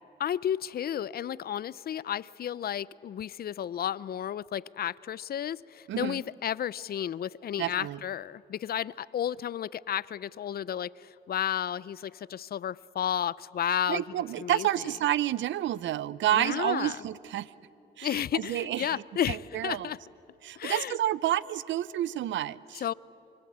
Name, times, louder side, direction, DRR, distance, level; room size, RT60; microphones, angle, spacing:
voice 1, 0.2-14.9 16.3-17.0 18.0-20.0 20.6-21.0 22.7-22.9, left 10 dB, 50° left, 21 dB, 0.5 m, -32 dB
voice 2, 5.9-6.2 7.6-8.0 13.9-17.5 18.0-19.0 19.3-19.9 20.4-22.8, right 12 dB, 70° right, 19 dB, 0.7 m, -29 dB
25.0 x 24.5 x 8.7 m, 2.7 s
cardioid pair, 90°, 20 cm